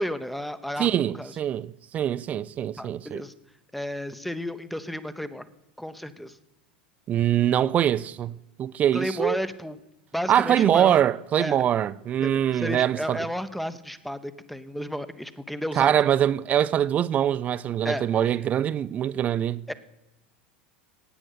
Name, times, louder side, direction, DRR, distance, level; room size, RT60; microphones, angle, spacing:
voice 1, 0.0-1.3 2.8-3.3 3.7-5.5 5.8-6.4 8.9-9.8 10.1-11.0 11.4-11.7 12.2-15.9 17.8-18.0 19.7-19.8, equal, ahead, 0.7 m, -32 dB
voice 2, 0.8-3.2 7.1-9.4 10.3-13.2 15.8-19.6, right 10 dB, 30° right, 0.4 m, -23 dB
17.0 x 8.9 x 4.0 m
figure-of-eight pair, 80°, 5 cm